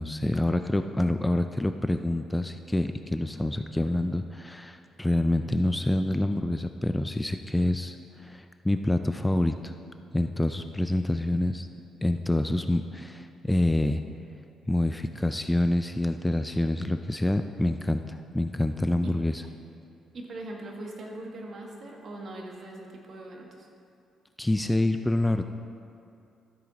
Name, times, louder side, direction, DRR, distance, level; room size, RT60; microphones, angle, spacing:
voice 1, 0.0-9.7 10.1-11.7 12.0-14.0 14.7-19.4 24.4-25.4, left 1 dB, 10° left, 8 dB, 0.4 m, -27 dB
voice 2, 20.1-23.7, right 1 dB, 55° right, 0 dB, 1.7 m, -41 dB
13.0 x 7.6 x 4.1 m, 2.6 s
cardioid pair, 90°, 0 cm